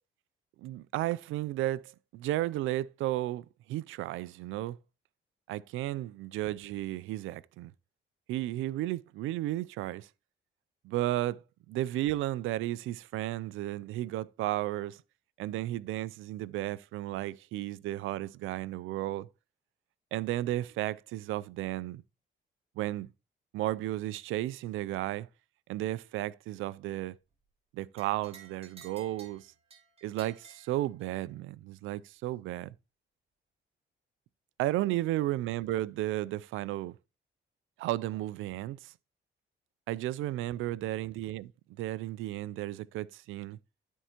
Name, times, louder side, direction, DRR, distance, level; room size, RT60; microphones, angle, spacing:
voice 1, 0.6-4.8 5.5-7.7 8.3-10.1 10.8-11.4 11.7-15.0 15.4-19.3 20.1-22.0 22.8-23.1 23.5-25.3 25.7-27.1 27.7-29.5 30.0-32.7 34.6-37.0 37.8-38.9 39.9-41.5 41.8-43.6, right 15 dB, 85° right, 0.4 m, -33 dB
sound 1, 28.0-31.3, right 6 dB, 30° right, 2.2 m, -55 dB
12.5 x 4.6 x 2.9 m
cardioid pair, 90°, 20 cm